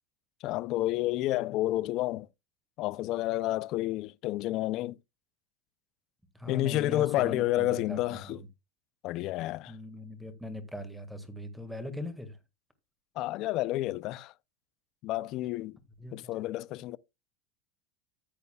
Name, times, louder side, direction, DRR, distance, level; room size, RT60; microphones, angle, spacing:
voice 1, 0.4-2.3 2.8-5.0 6.5-8.4 9.0-9.7 13.2-14.3 15.0-15.7 16.1-17.0, left 16 dB, 45° left, 0.4 m, -30 dB
voice 2, 6.3-8.4 9.7-12.4 16.0-16.1, left 1 dB, ahead, 1.7 m, -40 dB
14.0 x 8.0 x 2.3 m
supercardioid pair, 150°, 0 cm